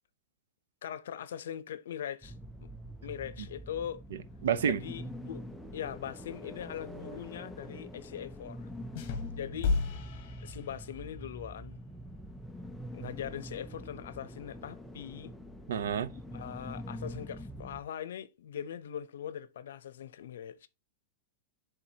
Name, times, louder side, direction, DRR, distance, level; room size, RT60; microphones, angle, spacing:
voice 1, 0.8-2.3 3.0-4.0 4.6-5.4 5.7-8.7 9.3-9.8 10.4-11.8 12.9-15.3 16.3-20.7, left 9 dB, 85° left, 0.6 m, -41 dB
sound 1, 2.2-17.8, equal, ahead, 0.4 m, -45 dB
voice 2, 4.1-4.8 15.7-16.1, right 8 dB, 90° right, 0.7 m, -30 dB
sound 2, 9.0-11.2, left 4 dB, 40° left, 1.2 m, -33 dB
11.0 x 3.8 x 2.8 m
supercardioid pair, 175°, 0 cm